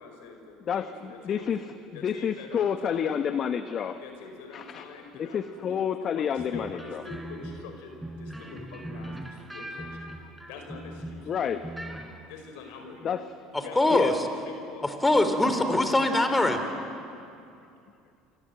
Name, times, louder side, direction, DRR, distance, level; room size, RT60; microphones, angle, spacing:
voice 1, 0.0-1.5 1.9-3.1 4.0-5.9 6.2-9.9 10.5-11.7 12.3-13.1 13.5-14.1 14.4-14.8, left 4 dB, 70° left, 4 dB, 5.3 m, -44 dB
voice 2, 0.7-4.0 4.5-4.9 5.2-7.0 11.2-11.6 13.0-13.3 13.9-14.2, left 8 dB, 45° left, 10 dB, 1.1 m, -29 dB
sound 1, 6.4-11.3 11.6-12.2, right 1 dB, 5° right, 3.8 m, -40 dB
voice 3, 13.8-14.1 15.0-16.6, left 1 dB, 15° left, 7 dB, 3.5 m, -22 dB
29.5 x 25.0 x 7.8 m, 2.6 s
hypercardioid pair, 70°, 0 cm